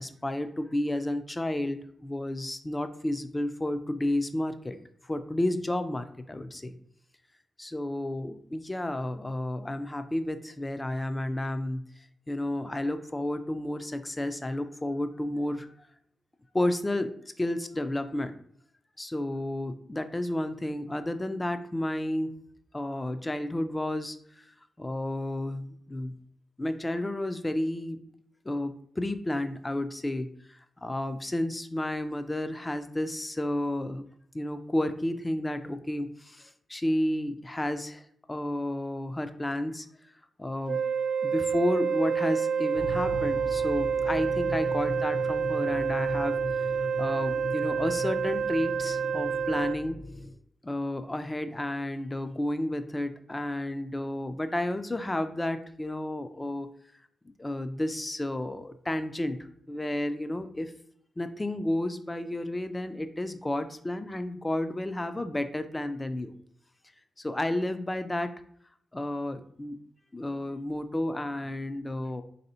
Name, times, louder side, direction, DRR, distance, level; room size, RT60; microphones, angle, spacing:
voice 1, 0.0-4.8 5.0-6.8 7.6-11.9 12.3-15.9 16.5-18.3 19.0-22.3 22.7-26.2 26.6-28.0 28.5-34.0 34.3-39.9 40.4-40.8 41.2-46.7 47.0-50.0 50.6-56.7 57.4-60.7 61.2-66.3 67.2-68.3 68.9-69.8 70.1-72.2, left 1 dB, 20° left, 9 dB, 0.4 m, -31 dB
Wind instrument woodwind instrument, 40.7-49.8, right 6 dB, 75° right, 0.4 m, -28 dB
sound 1, 42.7-50.3, left 1 dB, 55° left, 0.6 m, -39 dB
3.3 x 2.7 x 4.1 m, 0.64 s
cardioid pair, 80°, 0 cm